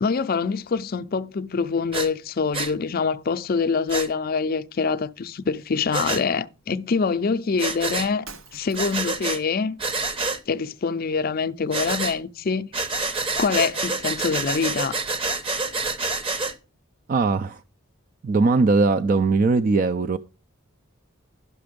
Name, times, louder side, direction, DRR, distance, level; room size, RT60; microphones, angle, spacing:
voice 1, 0.0-8.3 8.5-9.8 10.5-12.7 13.4-15.0, left 5 dB, 45° left, 0.5 m, -25 dB
Breathing, 1.9-2.1 2.5-2.7 3.9-4.1 5.9-6.2 7.6-8.1 8.7-9.4 9.8-10.4 11.7-12.2 12.7-16.5, right 3 dB, 25° right, 0.8 m, -27 dB
Shatter, 8.2-9.2, right 5 dB, 85° right, 1.1 m, -43 dB
voice 2, 17.1-17.6 18.2-20.2, right 3 dB, 40° right, 0.4 m, -20 dB
11.5 x 6.0 x 5.1 m
head